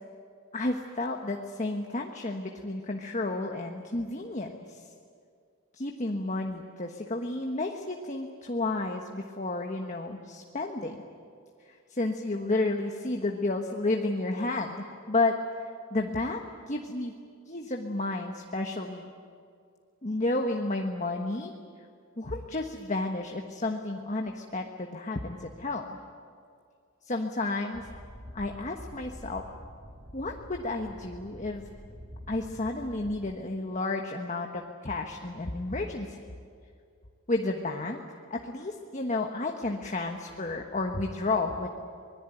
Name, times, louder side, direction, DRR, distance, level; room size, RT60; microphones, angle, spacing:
voice 1, 0.5-4.8 5.7-11.0 11.7-15.4 15.9-17.1 17.5-19.1 20.0-21.5 22.2-26.0 27.0-27.8 28.3-29.4 30.1-31.7 32.3-36.2 37.3-38.0 38.3-41.7, left 2 dB, 35° left, 3 dB, 1.3 m, -31 dB
sound 1, 27.7-33.3, equal, 35° right, 4.8 m, -46 dB
25.0 x 21.0 x 9.2 m, 2.2 s
head